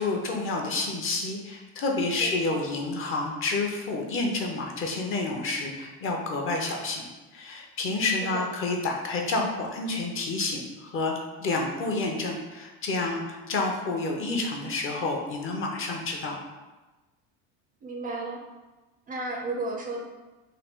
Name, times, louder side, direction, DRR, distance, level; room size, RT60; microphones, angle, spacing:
voice 1, 0.0-7.0 7.3-11.1 11.4-16.4, left 3 dB, 40° left, 1 dB, 0.7 m, -29 dB
voice 2, 2.2-2.6 8.3-8.5 17.8-18.4 19.1-20.0, right 2 dB, 25° right, 0 dB, 0.4 m, -33 dB
3.8 x 2.5 x 3.5 m, 1.1 s
cardioid pair, 130°, 34 cm